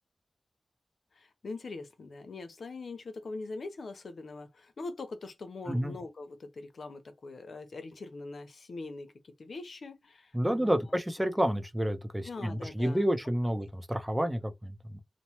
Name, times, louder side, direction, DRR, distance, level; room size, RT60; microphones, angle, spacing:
voice 1, 1.1-9.1 9.4-10.8 12.2-13.3 13.6-13.7, left 3 dB, 90° left, 0.6 m, -42 dB
voice 2, 10.3-15.0, equal, 15° right, 0.6 m, -30 dB
3.0 x 2.0 x 2.8 m
wide cardioid pair, 85°, 0 cm